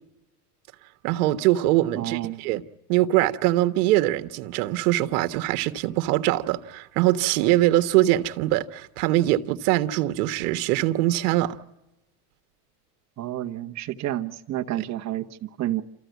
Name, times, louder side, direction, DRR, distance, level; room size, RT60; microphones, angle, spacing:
voice 1, 1.0-2.6 2.9-11.6, right 15 dB, 70° right, 1.5 m, -22 dB
voice 2, 1.9-2.4 13.2-15.8, right 13 dB, 35° right, 1.3 m, -30 dB
28.5 x 15.0 x 9.4 m
supercardioid pair, 125°, 45 cm